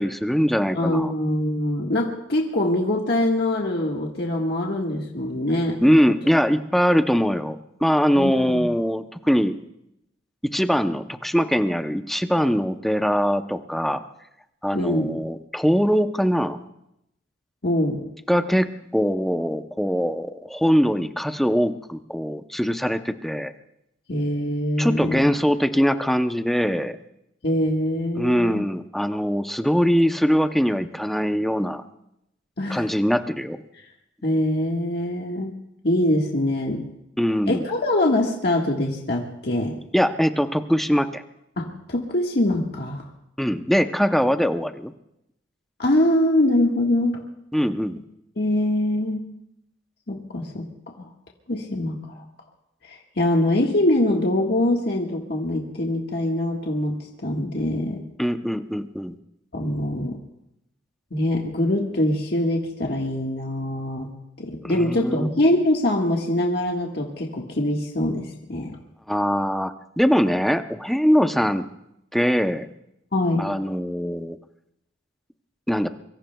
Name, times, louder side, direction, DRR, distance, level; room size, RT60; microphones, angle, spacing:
voice 1, 0.0-1.1 5.8-9.6 10.4-14.0 14.6-16.6 18.3-23.5 24.8-27.0 28.2-31.8 32.7-33.6 37.2-37.7 39.9-41.2 43.4-44.9 47.5-48.0 58.2-59.1 64.6-65.3 69.1-71.7 72.1-72.7 73.4-74.4 75.7-75.9, equal, ahead, 7 dB, 0.6 m, -22 dB
voice 2, 0.7-6.0 8.1-8.7 14.7-15.2 17.6-18.1 24.1-25.3 27.4-28.7 32.6-32.9 34.2-35.5 35.8-36.9 37.5-39.8 41.6-43.1 45.8-47.2 48.4-49.3 50.1-50.7 51.0-51.1 51.5-52.2 52.8-58.0 59.5-60.2 61.1-68.8 73.1-73.6, left 1 dB, 55° left, -1 dB, 1.5 m, -23 dB
25.0 x 23.5 x 2.3 m, 0.83 s
head